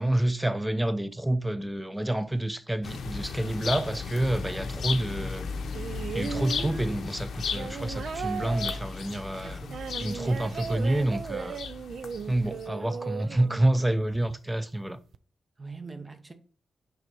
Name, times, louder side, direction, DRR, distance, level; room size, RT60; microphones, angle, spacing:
voice 1, 0.0-5.5 6.1-9.6 10.0-11.6 12.3-15.0, right 1 dB, 10° right, 0.6 m, -28 dB
sound 1, 2.8-12.7, left 5 dB, 80° left, 0.6 m, -35 dB
sound 2, 5.7-14.1 15.1-15.2, right 6 dB, 75° right, 0.3 m, -37 dB
voice 2, 9.4-9.8 10.0-10.3 15.6-16.3, right 4 dB, 35° right, 1.0 m, -43 dB
5.3 x 4.1 x 4.5 m
cardioid pair, 60°, 0 cm